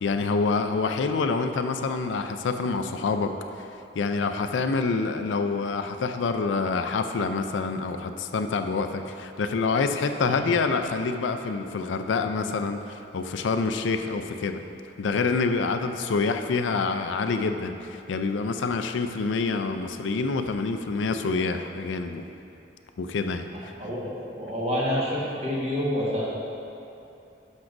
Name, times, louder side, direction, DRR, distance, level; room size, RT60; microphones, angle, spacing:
voice 1, 0.0-3.3 4.0-14.6 15.0-22.2 23.0-23.7, left 4 dB, 80° left, 7 dB, 0.4 m, -27 dB
voice 2, 23.5-26.3, equal, 35° right, -6 dB, 1.4 m, -28 dB
12.0 x 6.2 x 2.6 m, 2.8 s
head